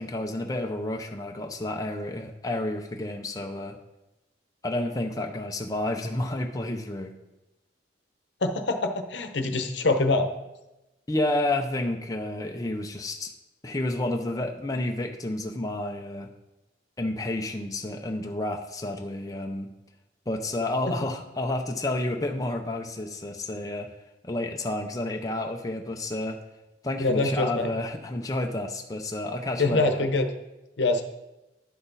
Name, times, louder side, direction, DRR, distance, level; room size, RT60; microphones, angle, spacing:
voice 1, 0.0-3.8 4.6-7.1 11.1-13.3 13.6-16.3 17.0-19.7 20.3-23.9 24.2-26.4 26.8-30.0, left 1 dB, 20° left, 2 dB, 0.6 m, -30 dB
voice 2, 8.4-10.3 27.0-27.7 29.6-30.3 30.8-31.0, left 2 dB, 75° left, 6 dB, 0.9 m, -24 dB
11.0 x 5.9 x 4.0 m, 0.99 s
head